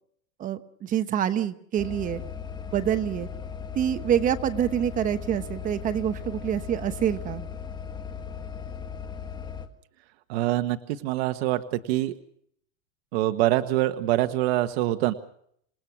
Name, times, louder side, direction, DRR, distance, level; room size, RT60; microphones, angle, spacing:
voice 1, 0.4-2.2 2.7-3.3 3.7-7.4, right 10 dB, 20° right, 11 dB, 1.0 m, -26 dB
sound 1, 1.8-9.7, left 7 dB, 10° left, 1.6 m, -37 dB
voice 2, 10.3-12.1 13.1-15.1, right 15 dB, 50° right, 8 dB, 1.4 m, -25 dB
28.0 x 19.0 x 6.1 m, 0.67 s
supercardioid pair, 155°, 39 cm